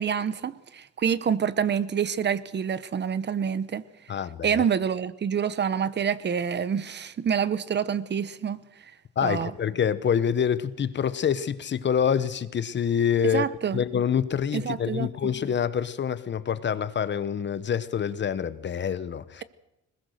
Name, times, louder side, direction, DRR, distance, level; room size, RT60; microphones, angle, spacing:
voice 1, 0.0-3.8 4.4-8.6 9.2-9.5 13.3-13.8 14.5-15.3, right 7 dB, 35° right, 1.0 m, -27 dB
voice 2, 4.1-4.6 9.2-13.4 13.7-19.4, left 8 dB, 35° left, 1.0 m, -26 dB
21.5 x 20.5 x 6.5 m
cardioid pair, 105°, 31 cm